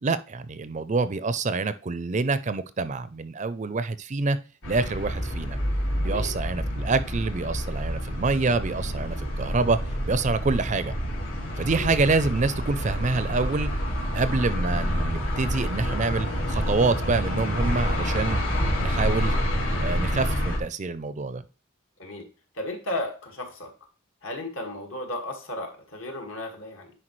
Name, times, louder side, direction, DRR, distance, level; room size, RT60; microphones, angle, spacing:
voice 1, 0.0-4.4 4.7-5.6 6.0-9.8 10.1-10.9 11.6-13.7 14.1-18.4 18.8-19.4 19.8-21.4, right 3 dB, 35° right, 14 dB, 0.5 m, -26 dB
sound 1, 4.6-20.6, equal, 85° left, 2.8 m, -28 dB
voice 2, 6.0-6.3 11.7-11.9 22.0-22.3 22.5-23.7 24.2-26.9, left 1 dB, 70° left, 3 dB, 2.0 m, -34 dB
9.9 x 4.8 x 3.2 m, 0.36 s
head